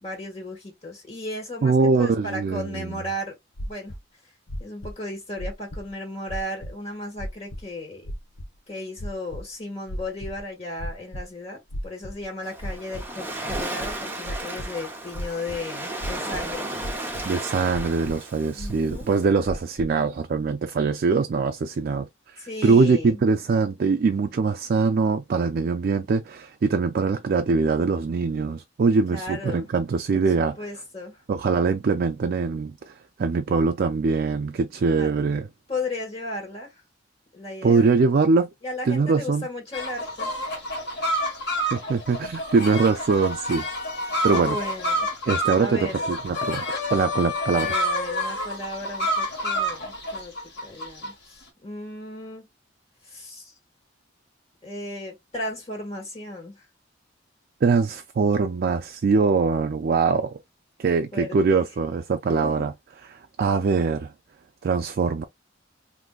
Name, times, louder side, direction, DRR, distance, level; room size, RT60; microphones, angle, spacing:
voice 1, 0.0-3.3 3.7-3.9 4.6-8.1 8.7-16.7 18.5-19.1 22.4-23.2 29.1-29.7 30.1-31.2 35.0-35.1 35.7-36.7 37.3-37.9 38.6-40.3 44.3-45.1 45.6-46.1 47.5-50.3 50.6-52.4 53.0-53.5 54.6-56.6 61.1-61.7 62.3-62.7, left 1 dB, 35° left, 1.4 m, -35 dB
voice 2, 1.6-3.0 17.2-22.1 22.6-30.6 31.3-32.9 33.2-35.5 37.6-38.5 38.9-39.5 41.7-43.6 44.2-44.6 45.3-46.7 46.9-47.8 57.6-60.4 60.8-62.7 63.4-64.1 64.6-65.2, right 4 dB, 50° right, 0.3 m, -22 dB
sound 1, 3.6-4.0 4.5-4.9 5.4-5.9 6.3-6.7 7.2-7.6 8.1-8.5 9.0-9.4 9.9-10.4 10.8-11.2 11.7-12.2 12.6-13.0 13.5-14.7 15.1-15.6 16.0-16.5 16.8-17.3 17.7-18.2 18.6-19.1 19.4-19.9, equal, 85° left, 0.7 m, -34 dB
Waves surf, 12.4-19.2, right 1 dB, 10° right, 0.8 m, -34 dB
sound 2, 39.7-51.1, equal, 55° left, 1.4 m, -28 dB
3.6 x 2.6 x 2.3 m
head